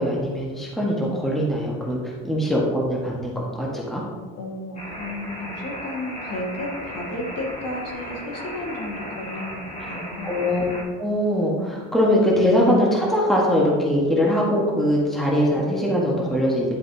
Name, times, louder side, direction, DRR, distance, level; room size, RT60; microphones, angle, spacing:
voice 1, 0.0-2.0 2.2-4.0 10.2-10.6 11.0-16.7, equal, ahead, -3 dB, 1.2 m, -22 dB
voice 2, 4.4-10.4, left 1 dB, 40° left, -1 dB, 1.8 m, -33 dB
sound 1, 4.8-10.8, equal, 20° left, 1.6 m, -35 dB
10.0 x 4.8 x 2.7 m, 1.5 s
cardioid pair, 105°, 37 cm